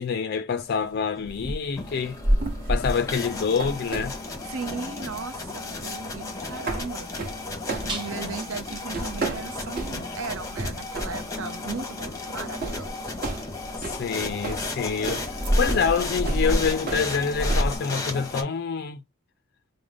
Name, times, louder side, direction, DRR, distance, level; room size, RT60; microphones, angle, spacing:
voice 1, 0.0-2.2 2.7-4.2 13.8-19.0, left 6 dB, 50° left, 0.3 m, -27 dB
sound 1, 1.3-17.8, right 1 dB, 40° right, 1.0 m, -30 dB
sound 2, 1.6-18.4, left 3 dB, 15° left, 0.7 m, -34 dB
sound 3, 2.8-9.7, right 2 dB, 20° right, 1.2 m, -45 dB
voice 2, 4.4-7.1 7.8-13.4, right 5 dB, 65° right, 0.6 m, -37 dB
5.0 x 2.0 x 3.3 m
head